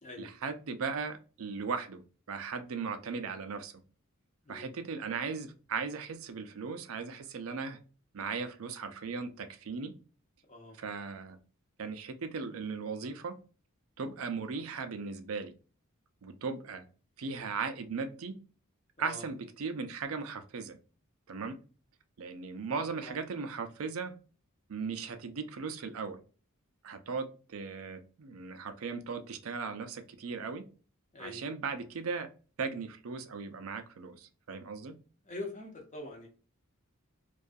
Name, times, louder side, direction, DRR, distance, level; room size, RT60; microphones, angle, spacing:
voice 1, 0.2-2.0 2.3-3.8 4.5-7.8 8.1-10.0 10.8-11.4 11.8-13.4 14.0-15.5 16.2-16.8 17.2-18.4 19.0-20.8 21.3-21.6 22.2-24.1 24.7-26.2 26.8-30.7 31.2-32.3 32.6-35.0, right 5 dB, 70° right, 8 dB, 0.4 m, -37 dB
voice 2, 22.8-23.2 31.1-31.4 35.2-36.3, left 2 dB, 35° left, 1 dB, 0.8 m, -44 dB
2.3 x 2.3 x 2.5 m, 0.36 s
head